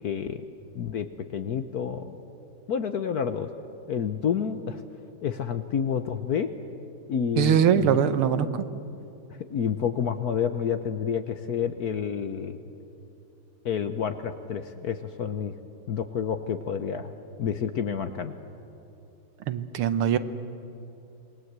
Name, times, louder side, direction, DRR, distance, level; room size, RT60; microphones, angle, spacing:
voice 1, 0.0-0.5 0.7-2.2 2.7-3.5 3.9-4.8 5.2-6.5 7.1-8.0 8.4-8.6 9.5-12.6 13.6-15.5 15.9-17.1 17.4-18.3, left 7 dB, 60° left, 9 dB, 1.1 m, -29 dB
voice 2, 7.4-8.6 19.5-20.2, right 9 dB, 85° right, 11 dB, 1.9 m, -22 dB
27.5 x 21.0 x 8.1 m, 2.7 s
omnidirectional pair, 2.4 m